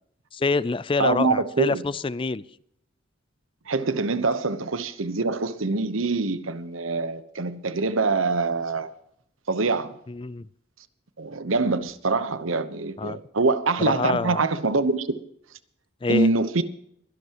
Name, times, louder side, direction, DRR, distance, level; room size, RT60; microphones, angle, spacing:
voice 1, 0.3-2.4 10.1-10.5 13.0-13.2 13.8-14.4 16.0-16.3, left 3 dB, 25° left, 0.4 m, -26 dB
voice 2, 1.0-1.9 3.7-8.9 9.5-10.0 11.2-15.1 16.1-16.6, right 3 dB, 90° right, 1.1 m, -24 dB
23.0 x 11.5 x 3.1 m
head